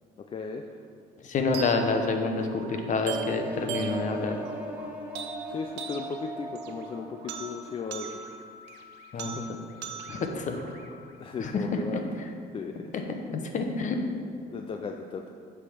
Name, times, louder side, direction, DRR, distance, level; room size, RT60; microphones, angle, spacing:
voice 1, 0.2-0.6 5.5-8.1 9.1-9.5 11.2-12.0 12.5-13.2 14.5-15.3, left 5 dB, 30° left, 4 dB, 0.4 m, -36 dB
voice 2, 1.2-4.4 9.1-9.4 10.1-10.5 11.4-11.6 13.2-14.0, left 4 dB, 50° left, 4 dB, 0.8 m, -28 dB
sound 1, 1.5-11.6, right 5 dB, 85° right, 0.7 m, -40 dB
sound 2, 3.1-8.0, right 1 dB, 10° right, 1.0 m, -42 dB
8.1 x 3.6 x 5.7 m, 2.3 s
cardioid pair, 110°, 17 cm